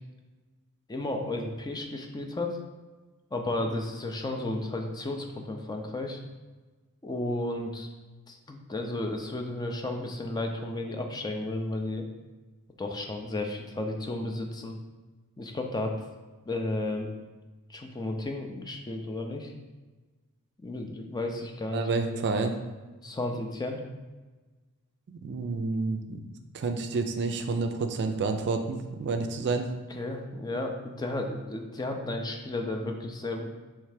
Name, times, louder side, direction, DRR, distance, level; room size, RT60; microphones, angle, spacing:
voice 1, 0.9-2.6 3.3-6.2 7.0-7.9 8.3-12.0 12.8-14.8 15.4-16.0 16.5-17.1 17.7-19.5 20.6-21.9 23.0-23.8 30.0-33.5, left 2 dB, 20° left, 3 dB, 0.4 m, -33 dB
voice 2, 21.7-22.6 25.1-26.2 26.5-29.7, right 3 dB, 50° right, 6 dB, 0.4 m, -29 dB
3.3 x 3.2 x 4.8 m, 1.2 s
head